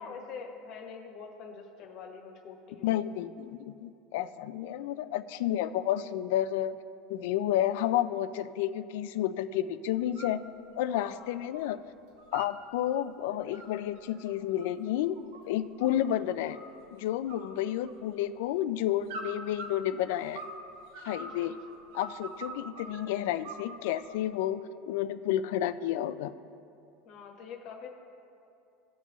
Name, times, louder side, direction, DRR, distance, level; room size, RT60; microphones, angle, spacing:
voice 1, 0.0-3.0 4.8-5.0 10.9-11.1 21.1-21.5 27.0-27.9, left 5 dB, 45° left, 3 dB, 1.3 m, -45 dB
voice 2, 2.8-6.8 7.1-10.4 10.8-11.8 12.3-15.2 15.4-16.6 16.9-20.4 21.0-21.6 21.9-26.3, left 12 dB, 70° left, 13 dB, 0.4 m, -31 dB
sound 1, 10.0-10.4 10.7-11.7 11.9-12.9 13.3-16.1 16.5-17.0 17.3-18.3 19.1-20.6 20.9-23.0 23.4-24.2, right 3 dB, 70° right, 1.4 m, -44 dB
17.5 x 6.1 x 3.0 m, 2.7 s
cardioid pair, 165°, 0 cm